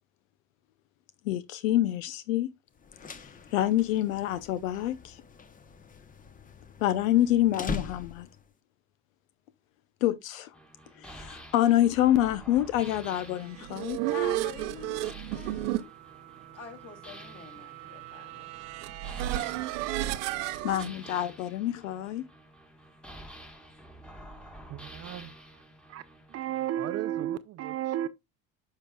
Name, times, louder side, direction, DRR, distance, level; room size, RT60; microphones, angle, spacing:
voice 1, 1.2-2.5 3.5-5.2 6.8-8.3 10.0-10.5 11.0-14.0 20.6-22.2, left 13 dB, 80° left, 0.7 m, -26 dB
sound 1, 2.8-8.5, left 4 dB, 20° left, 0.8 m, -42 dB
sound 2, 10.5-26.7, equal, ahead, 1.3 m, -50 dB
sound 3, 13.4-20.9, right 15 dB, 75° right, 0.9 m, -33 dB
voice 2, 14.1-15.9 16.5-18.5, left 8 dB, 40° left, 2.7 m, -45 dB
voice 3, 24.7-25.3 25.9-26.0 26.3-28.1, right 12 dB, 40° right, 0.6 m, -33 dB
9.7 x 5.7 x 2.3 m
supercardioid pair, 100°, 39 cm